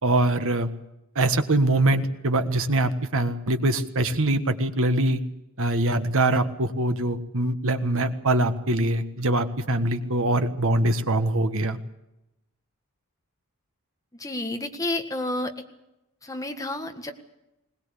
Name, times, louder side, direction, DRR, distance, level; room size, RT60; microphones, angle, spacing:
voice 1, 0.0-0.7 1.1-5.2 5.6-11.8, right 2 dB, 65° right, 9 dB, 1.6 m, -23 dB
voice 2, 14.2-15.7 16.2-17.1, left 1 dB, 15° left, 5 dB, 1.7 m, -30 dB
21.0 x 19.0 x 8.4 m, 0.91 s
head